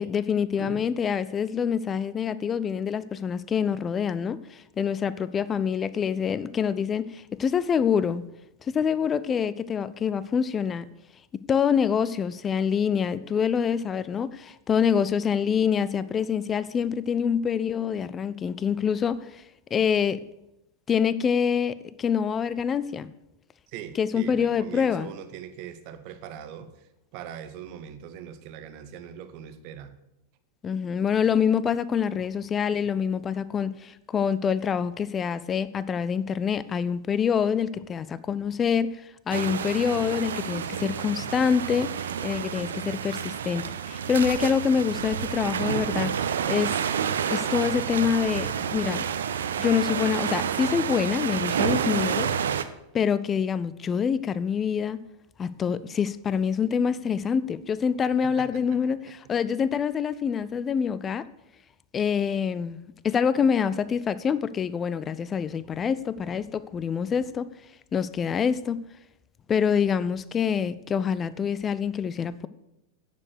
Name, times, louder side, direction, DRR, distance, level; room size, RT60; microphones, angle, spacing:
voice 1, 0.0-8.2 8.7-10.8 11.5-19.4 19.7-20.2 20.9-23.1 24.0-25.1 30.6-46.1 46.5-46.8 47.3-49.1 49.6-52.3 52.9-55.0 55.4-61.3 61.9-67.5 67.9-68.9 69.5-72.5, left 7 dB, 20° left, 0.4 m, -26 dB
voice 2, 23.7-29.9 58.3-58.9, right 9 dB, 45° right, 1.0 m, -41 dB
sound 1, 39.3-52.6, right 8 dB, 65° right, 0.5 m, -29 dB
9.8 x 6.7 x 6.5 m
figure-of-eight pair, 90°, 0 cm